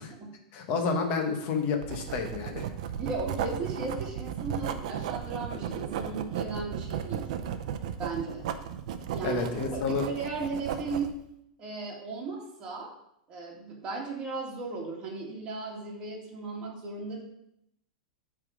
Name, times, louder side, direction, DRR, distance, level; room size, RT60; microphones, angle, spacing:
voice 1, 0.5-2.6 9.2-10.1, left 5 dB, 40° left, 4 dB, 1.1 m, -30 dB
Writing, 1.8-11.2, right 8 dB, 60° right, 0.6 m, -35 dB
voice 2, 3.0-7.3 8.0-8.5 9.1-11.1 11.6-12.9 13.3-17.2, right 4 dB, 25° right, -2 dB, 1.8 m, -36 dB
8.1 x 3.6 x 5.0 m, 0.77 s
supercardioid pair, 160°, 4 cm